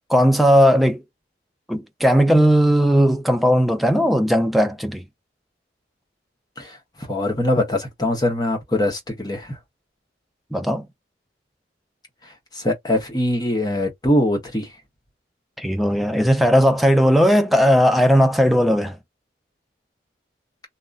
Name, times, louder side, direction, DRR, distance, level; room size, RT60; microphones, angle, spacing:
voice 1, 0.1-1.0 1.7-5.0 10.5-10.9 15.6-19.0, equal, ahead, 0.4 m, -17 dB
voice 2, 6.6-9.6 12.2-14.7, left 1 dB, 20° left, 1.0 m, -23 dB
2.8 x 2.4 x 2.4 m
head